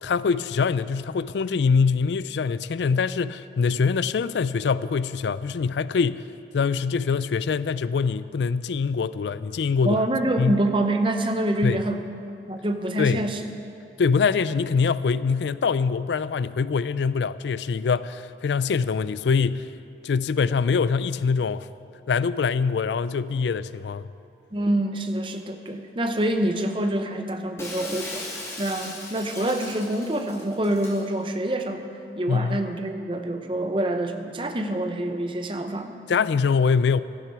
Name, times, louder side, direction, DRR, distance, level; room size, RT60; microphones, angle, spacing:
voice 1, 0.0-6.2 6.5-10.0 10.4-10.6 11.6-11.8 13.0-13.2 14.0-19.7 20.0-21.7 22.1-24.1 32.3-32.6 36.1-37.0, left 5 dB, 80° left, 16 dB, 0.4 m, -24 dB
voice 2, 9.8-12.1 12.5-13.5 24.5-28.2 28.6-31.9 32.2-36.0, right 1 dB, 30° right, 6 dB, 0.8 m, -26 dB
Shatter, 27.6-31.0, left 2 dB, 15° left, 1.8 m, -38 dB
16.5 x 12.5 x 4.8 m, 2.6 s
head